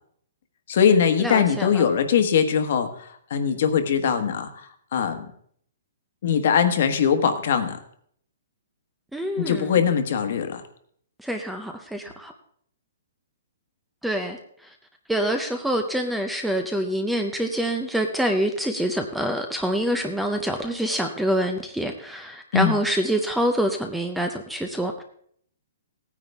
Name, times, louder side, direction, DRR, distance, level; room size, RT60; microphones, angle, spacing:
voice 1, 0.7-5.3 6.2-7.8 9.4-10.6 22.5-22.8, left 7 dB, 50° left, 8 dB, 1.3 m, -21 dB
voice 2, 1.2-1.8 9.1-9.7 11.2-12.3 14.0-14.4 15.1-25.0, right 1 dB, ahead, 5 dB, 0.6 m, -26 dB
17.0 x 9.6 x 3.4 m, 0.64 s
hypercardioid pair, 175°, 0 cm